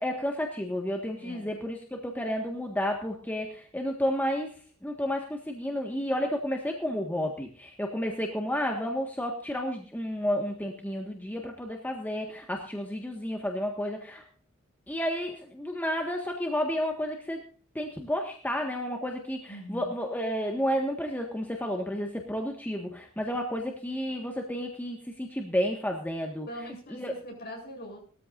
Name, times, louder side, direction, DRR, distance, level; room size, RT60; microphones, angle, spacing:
voice 1, 0.0-4.5 4.8-14.2 14.9-17.4 17.8-26.5 27.0-27.1, equal, 10° left, 2 dB, 1.6 m, -31 dB
voice 2, 1.2-1.5 19.5-19.9 26.5-28.0, equal, 45° left, 0 dB, 8.0 m, -42 dB
20.0 x 13.5 x 2.6 m, 0.42 s
head